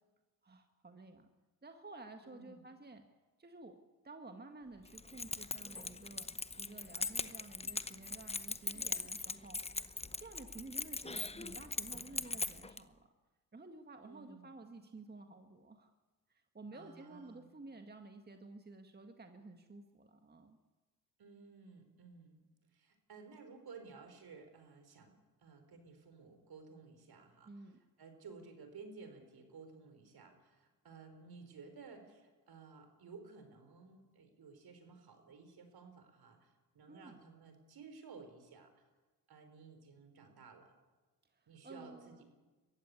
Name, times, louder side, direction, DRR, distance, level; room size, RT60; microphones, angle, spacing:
voice 1, 0.4-1.3 1.6-3.0 3.4-3.8 4.0-13.1 13.5-15.9 16.3-20.6 27.5-27.8 36.9-37.2 41.2-42.2, right 3 dB, 20° right, 6 dB, 1.8 m, -53 dB
voice 2, 2.2-2.6 14.0-14.5 16.7-17.5 21.2-22.4 22.7-25.1 25.4-27.5 28.0-38.8 39.3-40.7 41.5-42.2, right 4 dB, 55° right, 7 dB, 4.6 m, -55 dB
Keys jangling, 4.9-12.8, left 3 dB, 15° left, 0.9 m, -41 dB
22.0 x 15.0 x 8.4 m, 1.2 s
supercardioid pair, 60°, 45 cm